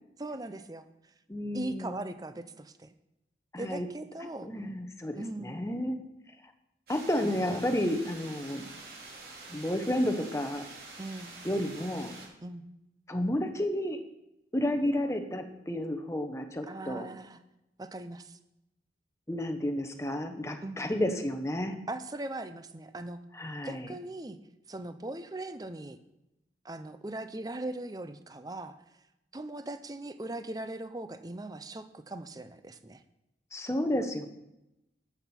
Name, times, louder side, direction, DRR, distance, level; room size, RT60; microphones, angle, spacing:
voice 1, 0.2-0.9 1.5-2.9 3.6-4.5 5.1-5.6 7.2-7.4 11.0-11.3 12.4-12.6 16.7-17.4 17.8-18.4 20.6-20.8 21.9-23.2 23.6-24.4 24.7-26.0 26.6-28.8 29.3-33.0, right 2 dB, 20° right, 10 dB, 0.6 m, -39 dB
voice 2, 1.3-2.0 3.5-3.9 4.4-6.0 6.9-8.7 9.5-10.6 11.4-12.1 13.1-14.0 14.5-17.1 19.3-21.8 23.3-23.9 33.5-34.3, left 1 dB, 15° left, 6 dB, 1.0 m, -31 dB
sound 1, 6.9-12.3, right 3 dB, 60° right, 3.0 m, -47 dB
12.5 x 8.2 x 4.4 m, 0.89 s
head